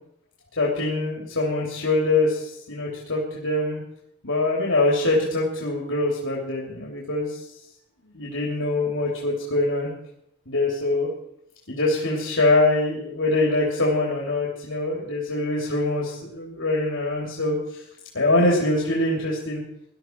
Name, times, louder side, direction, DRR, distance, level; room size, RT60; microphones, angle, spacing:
voice 1, 0.6-3.8 4.2-7.4 8.1-9.9 10.5-11.1 11.7-17.8 18.1-19.6, left 2 dB, 70° left, -3 dB, 3.1 m, -24 dB
19.0 x 13.0 x 4.6 m, 0.75 s
head